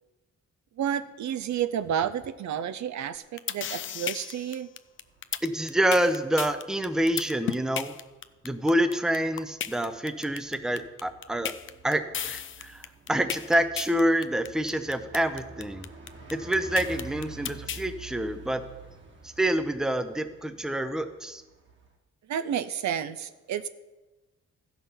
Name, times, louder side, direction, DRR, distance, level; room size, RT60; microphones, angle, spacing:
voice 1, 0.8-4.7 22.3-23.7, right 9 dB, 75° right, 12 dB, 0.6 m, -30 dB
sound 1, 3.1-17.8, left 9 dB, 45° left, 0.5 m, -34 dB
Bus, 4.9-22.0, right 4 dB, 40° right, 1.6 m, -49 dB
voice 2, 5.4-7.9 8.4-11.5 11.8-15.9 16.3-18.6 19.2-21.4, right 1 dB, ahead, 10 dB, 0.6 m, -27 dB
14.5 x 5.9 x 5.6 m, 1.1 s
cardioid pair, 125°, 29 cm